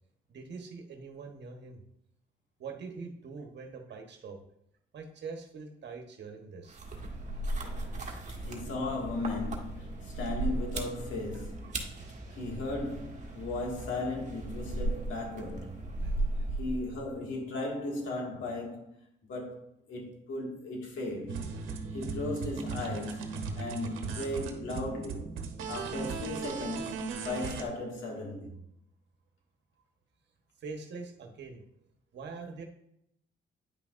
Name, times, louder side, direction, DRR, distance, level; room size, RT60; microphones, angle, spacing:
voice 1, 0.3-1.8 2.6-4.4 4.9-6.8 11.3-11.8 16.0-16.2 30.6-31.6 32.1-32.6, right 4 dB, 60° right, 1.3 m, -44 dB
sound 1, 6.7-17.1, right 2 dB, 35° right, 1.5 m, -37 dB
voice 2, 8.4-12.0 12.3-16.1 16.6-18.9 19.3-19.6 19.9-21.4 21.9-25.3 25.7-28.6, left 2 dB, 75° left, 2.1 m, -36 dB
sound 2, 21.3-27.6, right 4 dB, 85° right, 1.1 m, -37 dB
9.7 x 5.8 x 2.6 m
cardioid pair, 90°, 20 cm